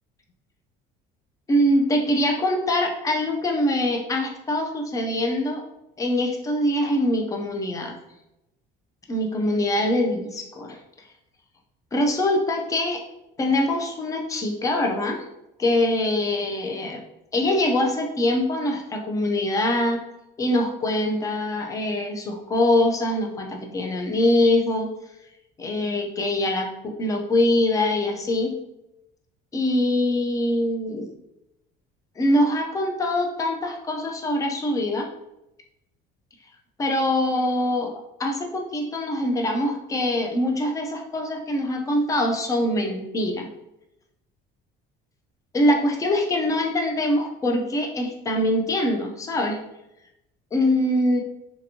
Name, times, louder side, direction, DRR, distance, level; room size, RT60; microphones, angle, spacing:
voice 1, 1.5-5.6 6.0-7.9 9.1-10.8 11.9-13.0 13.4-15.2 15.6-17.0 17.3-20.0 20.4-24.9 25.6-28.6 29.5-31.1 32.2-35.1 36.8-37.9 38.2-43.5 45.5-49.6 50.5-51.2, left 1 dB, 15° left, 2 dB, 0.4 m, -23 dB
3.3 x 2.9 x 2.6 m, 0.89 s
cardioid pair, 170°, 21 cm